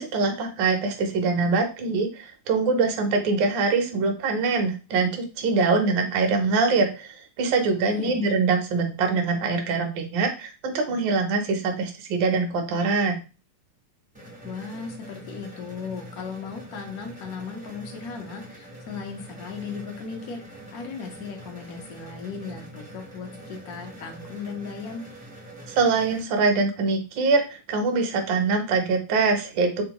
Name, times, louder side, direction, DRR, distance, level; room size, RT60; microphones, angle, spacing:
voice 1, 0.0-7.1 7.4-13.2 25.7-29.8, right 4 dB, 70° right, 3 dB, 1.2 m, -23 dB
voice 2, 7.8-8.3 14.4-25.0, left 5 dB, 65° left, 2 dB, 0.9 m, -37 dB
sound 1, 14.1-26.2, right 1 dB, 10° right, 0.5 m, -44 dB
3.6 x 2.2 x 2.9 m, 0.31 s
omnidirectional pair, 2.4 m